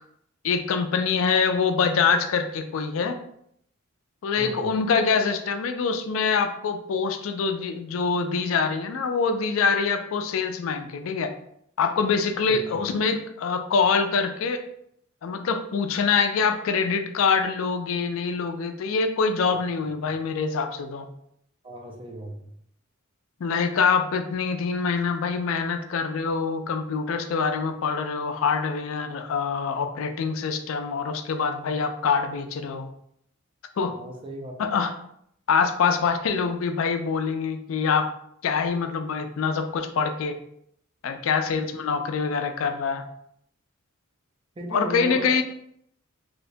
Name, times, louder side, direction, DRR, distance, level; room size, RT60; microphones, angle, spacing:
voice 1, 0.4-3.2 4.2-11.3 11.8-14.6 15.2-21.1 23.4-32.9 33.8-33.9 34.6-34.9 35.5-38.1 38.4-40.3 41.0-43.0 44.7-45.4, left 5 dB, 70° left, 7 dB, 0.4 m, -25 dB
voice 2, 4.4-4.7 12.5-12.6 21.6-22.5 33.9-34.5 44.6-45.4, right 1 dB, 25° right, 1 dB, 0.5 m, -37 dB
3.3 x 2.9 x 2.6 m, 0.71 s
head